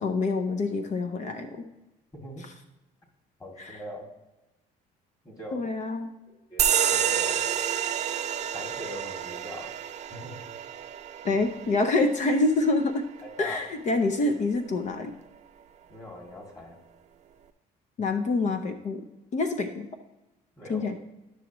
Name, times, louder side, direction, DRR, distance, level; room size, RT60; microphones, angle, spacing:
voice 1, 0.0-1.6 2.4-2.5 3.6-3.8 5.5-6.1 11.2-13.1 13.4-15.1 18.0-19.0 19.3-19.9 20.7-21.0, left 3 dB, 45° left, 7 dB, 0.7 m, -26 dB
voice 2, 2.1-2.5 3.4-4.1 5.2-5.7 6.5-7.4 8.5-9.7 10.1-10.4 11.3-11.4 13.2-13.6 15.9-16.8 20.6-20.9, equal, 20° left, 0 dB, 2.5 m, -41 dB
sound 1, 6.6-13.7, right 9 dB, 40° right, 0.5 m, -29 dB
11.5 x 6.1 x 3.1 m, 1.0 s
cardioid pair, 110°, 17 cm